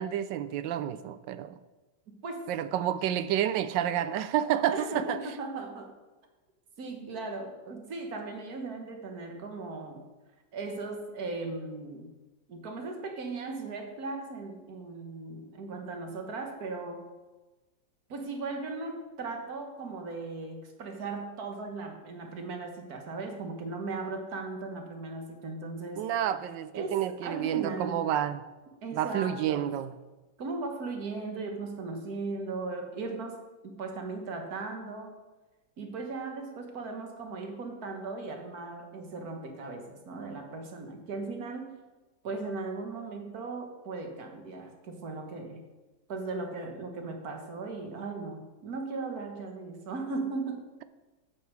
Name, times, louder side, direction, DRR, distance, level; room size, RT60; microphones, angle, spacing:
voice 1, 0.0-1.6 2.5-5.2 26.0-28.4 28.9-29.9, right 10 dB, 75° right, 1.2 m, -29 dB
voice 2, 2.1-2.5 4.7-5.9 6.8-10.0 10.5-12.1 12.5-17.1 18.1-26.1 26.7-28.0 28.8-29.7 30.4-33.4 33.6-35.2 35.8-41.7 42.2-45.6 46.1-50.7, right 3 dB, 50° right, 1.8 m, -37 dB
8.7 x 7.0 x 6.2 m
omnidirectional pair, 2.1 m